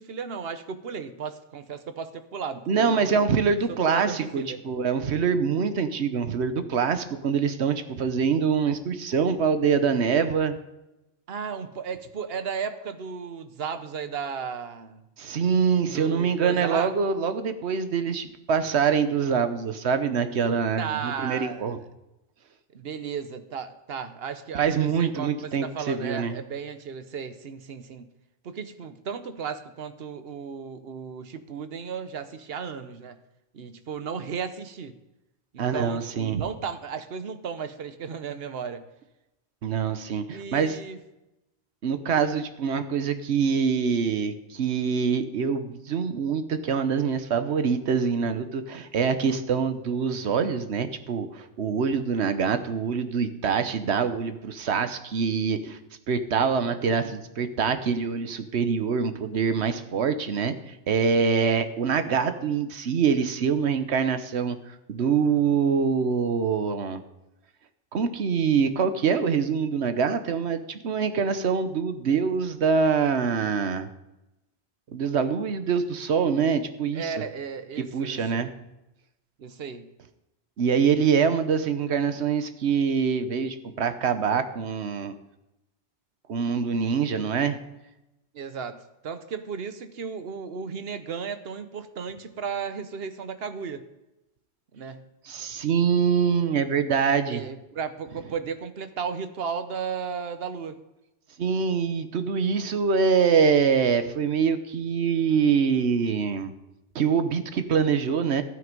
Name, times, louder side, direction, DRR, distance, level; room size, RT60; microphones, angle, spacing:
voice 1, 0.0-3.1 3.7-4.6 11.3-15.0 15.9-16.9 20.8-21.6 22.7-28.1 28.4-33.2 33.5-35.0 35.5-38.8 40.3-41.0 76.9-78.4 79.4-79.9 88.3-93.8 94.7-95.1 97.3-100.8, right 6 dB, 65° right, 10 dB, 1.1 m, -34 dB
voice 2, 2.7-10.6 15.2-21.8 24.5-26.4 35.6-36.4 39.6-40.8 41.8-55.8 56.1-64.6 64.9-67.0 67.9-73.9 74.9-77.1 77.8-78.5 80.6-85.1 86.3-87.6 95.2-97.4 101.4-106.5 106.9-108.4, right 6 dB, 85° right, 10 dB, 1.2 m, -24 dB
12.5 x 9.4 x 5.3 m, 0.93 s
omnidirectional pair, 1.1 m